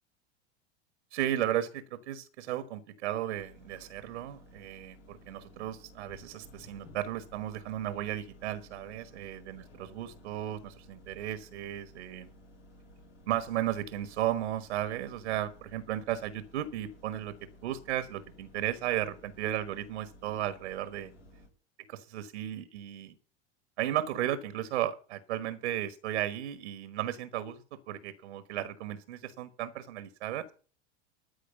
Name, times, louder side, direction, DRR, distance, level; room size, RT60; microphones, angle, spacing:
voice 1, 1.1-12.3 13.3-17.3 17.6-21.1 21.9-23.1 23.8-30.5, right 12 dB, 70° right, 13 dB, 1.3 m, -35 dB
sound 1, 3.3-21.5, left 1 dB, 80° left, 4.7 m, -56 dB
13.0 x 4.9 x 8.4 m, 0.38 s
hypercardioid pair, 85°, 35 cm